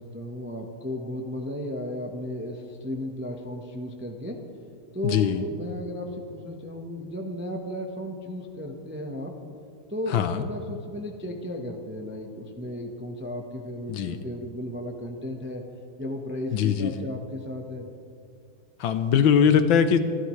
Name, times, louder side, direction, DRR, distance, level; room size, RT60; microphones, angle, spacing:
voice 1, 0.0-4.4 4.9-9.4 9.9-15.6 16.0-17.9, left 1 dB, 10° right, 2 dB, 0.5 m, -34 dB
voice 2, 5.0-5.4 10.1-10.4 13.9-14.2 16.5-16.9 18.8-20.0, left 7 dB, 70° left, 10 dB, 1.4 m, -21 dB
27.0 x 13.0 x 3.2 m, 2.6 s
omnidirectional pair, 2.4 m